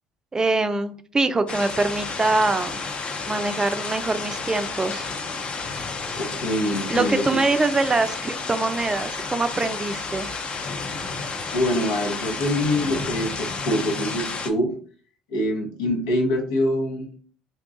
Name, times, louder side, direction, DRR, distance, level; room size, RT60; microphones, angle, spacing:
voice 1, 0.3-2.8 3.3-5.1 6.9-10.3, right 3 dB, 20° right, 10 dB, 0.4 m, -24 dB
sound 1, 1.5-14.5, left 4 dB, 35° left, 0.6 m, -31 dB
voice 2, 5.9-7.4 11.5-14.7 15.3-17.1, left 1 dB, 75° left, 0 dB, 1.0 m, -25 dB
2.9 x 2.3 x 3.7 m, 0.44 s
hypercardioid pair, 60°, 3 cm